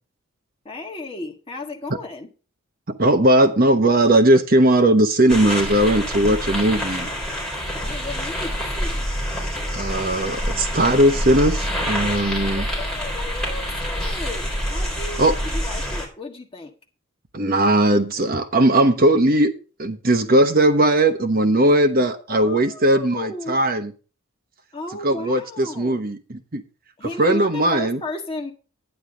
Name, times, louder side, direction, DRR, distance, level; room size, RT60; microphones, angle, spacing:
voice 1, 0.6-2.3 7.8-9.1 12.4-16.7 22.3-23.6 24.7-26.0 27.0-28.5, left 2 dB, 25° left, 1.5 m, -34 dB
voice 2, 2.9-7.1 9.7-12.6 15.2-15.4 17.3-19.5 19.8-23.9 25.0-26.6 27.2-28.0, right 1 dB, 45° right, 1.0 m, -18 dB
sound 1, 5.3-16.1, equal, 5° left, 4.1 m, -27 dB
11.0 x 9.9 x 3.8 m
head